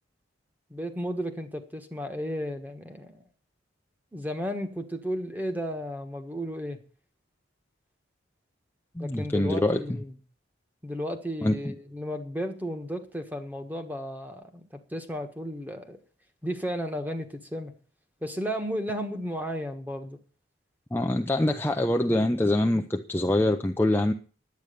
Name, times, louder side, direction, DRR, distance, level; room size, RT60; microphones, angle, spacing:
voice 1, 0.7-3.2 4.1-6.8 9.0-10.1 10.8-16.0 16.4-17.7 18.2-20.2, equal, 10° right, 1.4 m, -34 dB
voice 2, 9.0-9.8 11.4-11.7 20.9-24.1, left 1 dB, 10° left, 0.5 m, -24 dB
10.5 x 8.9 x 6.7 m
head